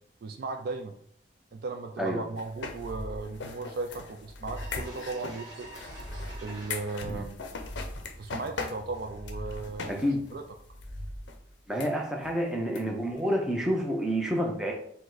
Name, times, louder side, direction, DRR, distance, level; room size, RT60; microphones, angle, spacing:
voice 1, 0.2-1.0 1.5-5.7 6.4-7.4 8.2-10.0 10.3-10.4, right 3 dB, 50° right, 5 dB, 0.3 m, -36 dB
sound 1, 2.4-10.1 10.3-10.4 10.8-10.9 11.3-11.4 11.8-11.9 12.2-12.3 12.8-12.9 13.1-13.2, left 4 dB, 65° left, 0.5 m, -40 dB
sound 2, 2.4-3.5 4.0-5.1 5.6-6.7 7.2-8.3 8.8-9.9 10.4-11.5, equal, 20° left, 1.5 m, -43 dB
sound 3, 4.1-4.2 4.5-7.2 7.5-10.5, right 1 dB, 20° right, 1.0 m, -49 dB
voice 2, 9.9-10.2 11.7-14.7, equal, 5° right, -1 dB, 0.6 m, -28 dB
5.0 x 2.1 x 3.9 m, 0.65 s
head